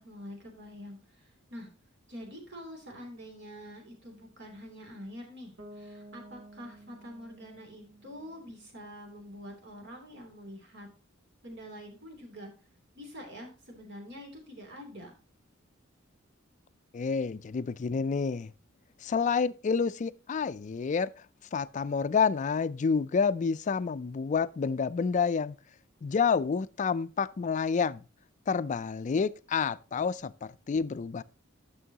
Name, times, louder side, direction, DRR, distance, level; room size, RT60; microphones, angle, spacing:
voice 1, 0.0-1.7 2.1-10.9 11.4-12.5 12.9-15.1, equal, 60° right, 3.1 m, -46 dB
Bass guitar, 5.6-9.4, right 1 dB, 80° right, 1.7 m, -52 dB
voice 2, 16.9-18.5 19.0-21.1 21.5-25.6 26.0-28.0 28.5-31.2, left 5 dB, 40° left, 0.4 m, -29 dB
11.0 x 6.2 x 2.9 m
head